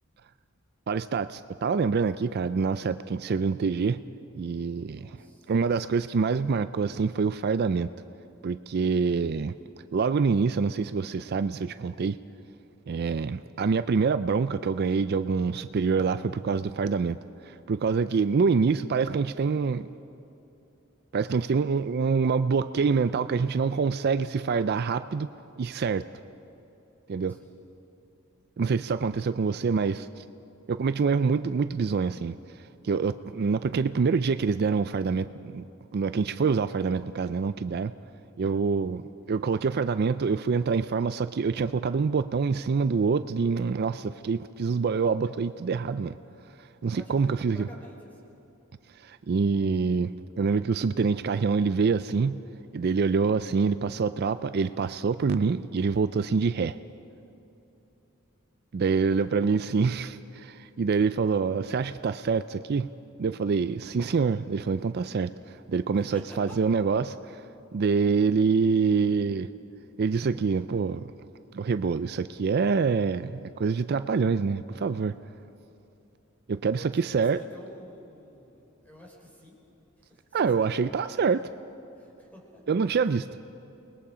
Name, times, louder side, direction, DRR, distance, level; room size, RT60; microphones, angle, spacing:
voice 1, 0.9-4.0 4.3-5.2 5.5-7.9 8.4-9.5 9.9-12.2 12.9-17.2 17.4-19.9 21.1-25.3 25.6-26.1 27.1-27.4 28.6-30.2 30.7-32.4 32.8-35.7 35.9-37.9 38.4-46.2 46.8-47.7 49.0-52.4 52.7-56.8 58.7-62.9 63.2-65.3 65.7-67.4 67.7-69.5 70.0-71.1 71.5-75.1 76.5-77.4 80.3-81.5 82.7-83.3, right 5 dB, 50° right, 12 dB, 0.4 m, -26 dB
voice 2, 4.7-5.5 27.3-27.6 46.9-48.3 59.1-59.2 66.0-66.6 76.7-79.6 80.0-80.9 81.1-81.3 81.9-82.6, equal, 10° left, -1 dB, 4.4 m, -50 dB
29.0 x 20.5 x 5.0 m, 2.9 s
head